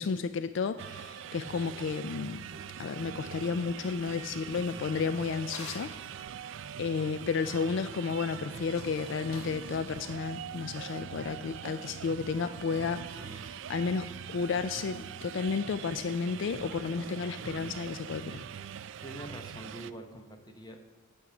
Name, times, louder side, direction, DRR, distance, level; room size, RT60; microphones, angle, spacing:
voice 1, 0.0-2.4 2.8-5.9 6.8-18.5, left 5 dB, 55° left, 12 dB, 0.3 m, -32 dB
sound 1, 0.8-19.9, right 8 dB, 60° right, 0.3 m, -43 dB
sound 2, 2.5-5.7 9.9-10.2 10.5-18.5, right 1 dB, 20° right, 1.4 m, -51 dB
Drawer open or close, 4.8-6.0 8.6-9.6, left 3 dB, 90° left, 1.6 m, -48 dB
voice 2, 19.0-20.8, right 1 dB, 20° left, 4 dB, 0.9 m, -45 dB
9.0 x 6.3 x 7.0 m, 1.4 s
head